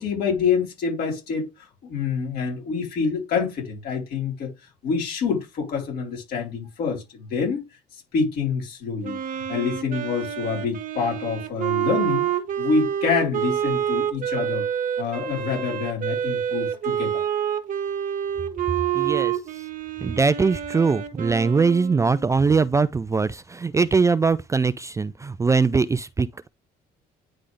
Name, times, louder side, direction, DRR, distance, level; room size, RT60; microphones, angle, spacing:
voice 1, 0.0-4.5 4.8-7.6 8.1-12.3 12.6-14.6 15.0-17.2, left 5 dB, 65° left, 4.0 m, -26 dB
Wind instrument woodwind instrument, 9.0-22.4, right 9 dB, 50° right, 1.2 m, -28 dB
voice 2, 18.9-19.3 20.0-26.5, right 4 dB, 20° right, 0.4 m, -21 dB
9.8 x 3.9 x 3.3 m
cardioid pair, 110°, 17 cm